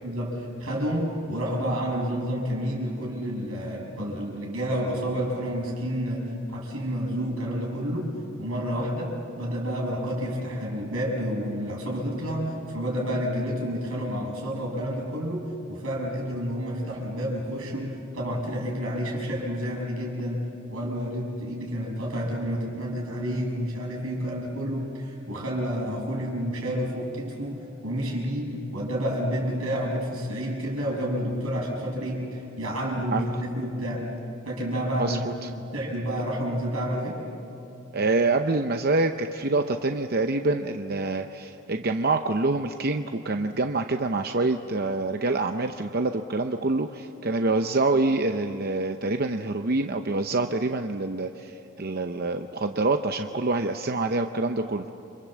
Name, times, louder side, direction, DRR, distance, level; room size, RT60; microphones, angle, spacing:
voice 1, 0.0-8.1 8.4-20.4 20.7-34.0 34.4-35.2 35.5-37.2, equal, 90° right, -1 dB, 6.8 m, -29 dB
voice 2, 35.0-35.3 37.9-54.8, right 2 dB, 45° right, 6 dB, 0.7 m, -26 dB
29.5 x 25.5 x 7.5 m, 2.8 s
head